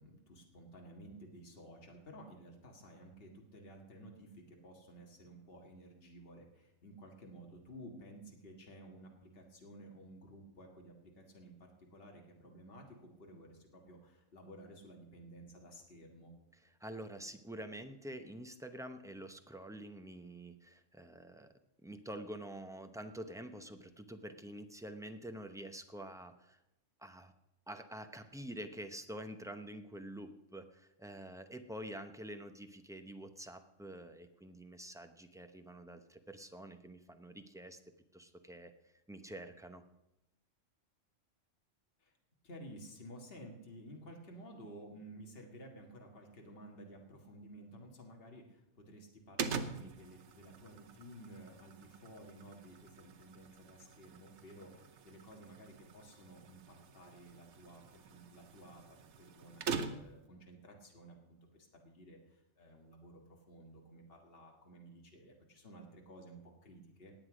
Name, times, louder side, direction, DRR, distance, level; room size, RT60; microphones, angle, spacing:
voice 1, 0.0-16.3 42.0-42.1 42.4-67.1, right 1 dB, 50° left, 1 dB, 2.0 m, -54 dB
voice 2, 16.5-21.5 21.8-26.6 27.0-27.3 27.7-37.8 38.1-38.7 39.1-39.8, right 1 dB, 5° right, 7 dB, 0.6 m, -47 dB
sound 1, 49.4-60.3, right 5 dB, 70° right, 1.1 m, -45 dB
18.5 x 8.1 x 5.0 m, 0.90 s
omnidirectional pair, 1.3 m